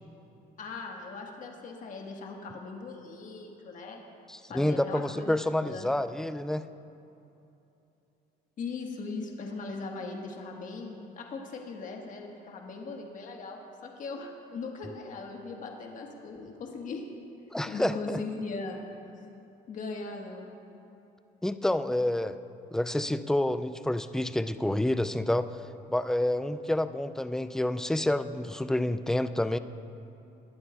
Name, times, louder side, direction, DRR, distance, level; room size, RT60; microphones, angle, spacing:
voice 1, 0.6-4.0 4.5-5.9 8.6-17.1 17.7-18.8 19.7-20.5, left 3 dB, 50° left, 1 dB, 1.4 m, -39 dB
voice 2, 4.3-6.7 17.5-18.2 21.4-22.4 22.7-25.5 25.9-29.6, left 1 dB, 5° left, 12 dB, 0.3 m, -28 dB
20.0 x 11.0 x 2.3 m, 2.8 s
cardioid pair, 110°, 17 cm